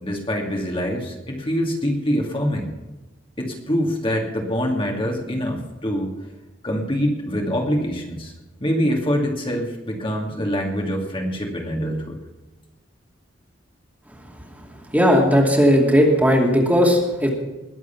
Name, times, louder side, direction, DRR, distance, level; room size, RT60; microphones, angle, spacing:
voice 1, 0.0-2.7 3.4-6.1 6.6-8.3 8.6-12.2, equal, 30° left, 1 dB, 2.4 m, -24 dB
voice 2, 14.9-17.3, equal, 10° right, 0 dB, 2.6 m, -16 dB
21.0 x 8.1 x 5.9 m, 1.0 s
head